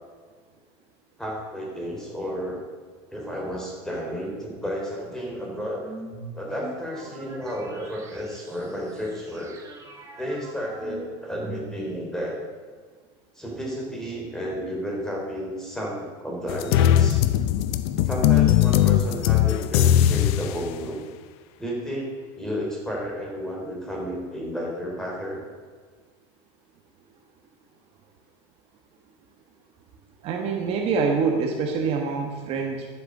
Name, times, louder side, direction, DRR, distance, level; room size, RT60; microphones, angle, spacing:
voice 1, 1.2-2.7 3.1-5.9 6.3-9.6 10.2-12.4 13.4-17.3 18.0-21.0 21.6-25.4, equal, 5° left, -2 dB, 3.4 m, -32 dB
sound 1, 5.8-12.1, right 2 dB, 20° right, 1.8 m, -42 dB
sound 2, 16.5-20.6, left 11 dB, 70° left, 0.7 m, -19 dB
voice 2, 30.2-32.9, right 5 dB, 45° right, 3 dB, 1.3 m, -25 dB
12.0 x 8.3 x 6.6 m, 1.5 s
supercardioid pair, 150°, 14 cm